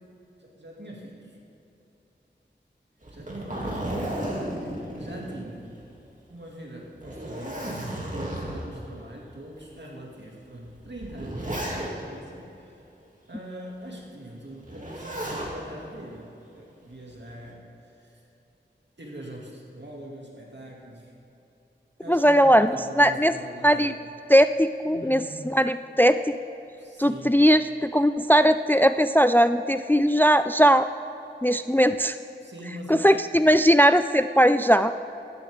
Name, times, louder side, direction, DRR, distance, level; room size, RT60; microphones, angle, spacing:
voice 1, 0.4-1.4 3.1-4.0 4.9-5.7 6.3-7.7 8.1-12.8 13.3-18.2 19.0-21.1 22.0-23.9 24.9-25.3 26.8-27.5 32.4-33.2, right 1 dB, 65° right, -2 dB, 2.5 m, -42 dB
Zipper (clothing), 3.0-5.9 6.3-6.4 6.9-8.8 9.6-9.7 10.6-12.2 14.6-15.5 16.9-17.4, right 1 dB, 40° right, 2.7 m, -33 dB
voice 2, 22.1-23.3 23.6-23.9 24.3-26.2 27.0-30.9 31.4-32.2 32.9-34.9, equal, 10° left, 11 dB, 0.3 m, -19 dB
14.5 x 12.0 x 3.7 m, 3.0 s
wide cardioid pair, 40°, 19 cm